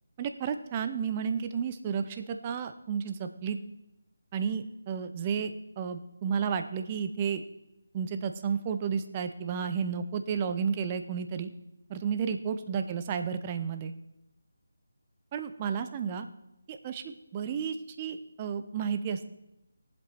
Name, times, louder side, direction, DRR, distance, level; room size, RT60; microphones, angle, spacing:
voice 1, 0.2-3.6 4.3-7.4 7.9-11.5 11.9-13.9 15.3-16.3 16.7-19.3, right 6 dB, 25° right, 8 dB, 0.7 m, -32 dB
18.5 x 7.8 x 4.4 m, 0.91 s
figure-of-eight pair, 160°, 0 cm